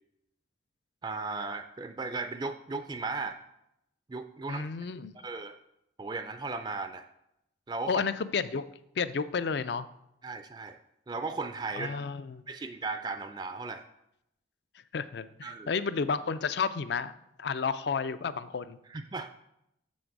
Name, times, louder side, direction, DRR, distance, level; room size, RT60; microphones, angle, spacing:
voice 1, 1.0-3.4 4.1-4.7 5.2-5.6 6.0-7.0 7.7-8.0 10.2-10.8 11.1-12.0 12.5-13.8 15.4-15.7 18.9-19.3, right 3 dB, 25° right, 9 dB, 0.3 m, -36 dB
voice 2, 4.5-5.2 7.9-8.7 9.0-9.9 11.8-12.4 14.9-17.1 17.4-18.8, left 5 dB, 60° left, 14 dB, 0.4 m, -31 dB
7.0 x 6.3 x 4.6 m, 0.80 s
head